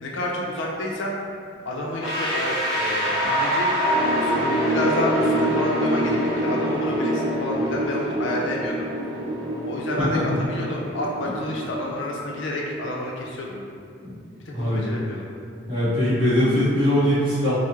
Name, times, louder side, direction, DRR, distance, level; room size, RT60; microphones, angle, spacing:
voice 1, 0.0-1.2 1.7-3.7 4.2-8.9 9.7-13.6 14.6-15.3, left 1 dB, 75° left, -2 dB, 0.4 m, -29 dB
sound 1, 2.0-12.9, equal, 10° right, 1.5 m, -25 dB
voice 2, 14.5-14.8 15.7-17.5, left 1 dB, 25° right, -13 dB, 1.2 m, -21 dB
3.5 x 2.0 x 2.9 m, 2.2 s
head